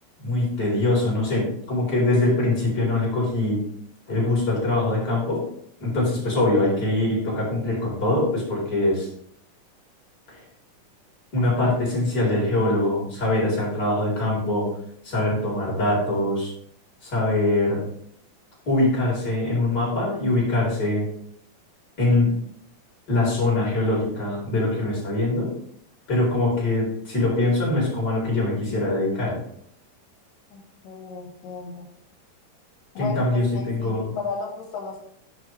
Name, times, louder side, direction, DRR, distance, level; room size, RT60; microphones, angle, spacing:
voice 1, 0.2-3.6 4.1-5.4 5.8-9.1 11.3-14.7 15.0-16.5 17.0-17.8 18.7-21.1 22.0-22.3 23.1-25.5 26.1-29.4 33.0-34.1, left 2 dB, 30° left, -5 dB, 4.2 m, -23 dB
voice 2, 30.5-31.9 32.9-35.0, left 4 dB, 80° left, 1 dB, 2.9 m, -34 dB
10.0 x 6.4 x 3.2 m, 0.68 s
omnidirectional pair, 3.9 m